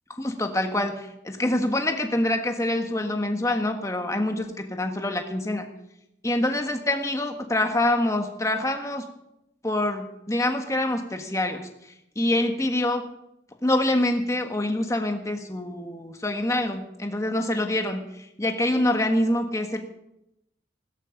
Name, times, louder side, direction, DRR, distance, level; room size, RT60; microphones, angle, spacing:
voice 1, 0.2-5.7 6.2-9.1 9.6-11.7 12.1-13.1 13.6-19.8, left 1 dB, 15° left, 5 dB, 1.6 m, -25 dB
16.5 x 13.5 x 5.2 m, 0.82 s
head